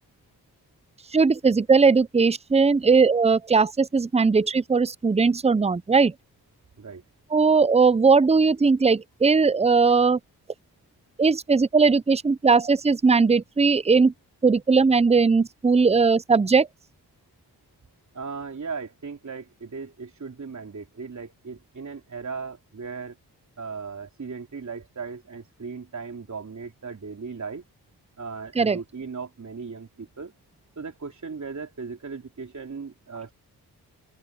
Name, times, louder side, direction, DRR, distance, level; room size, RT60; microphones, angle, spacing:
voice 1, 1.1-6.1 7.3-10.2 11.2-14.1 14.4-16.7 28.6-28.8, right 4 dB, 15° right, 0.6 m, -19 dB
voice 2, 18.1-23.1 23.6-27.6 28.2-30.3 30.8-33.3, right 5 dB, 45° right, 3.3 m, -37 dB
cardioid pair, 50°, 39 cm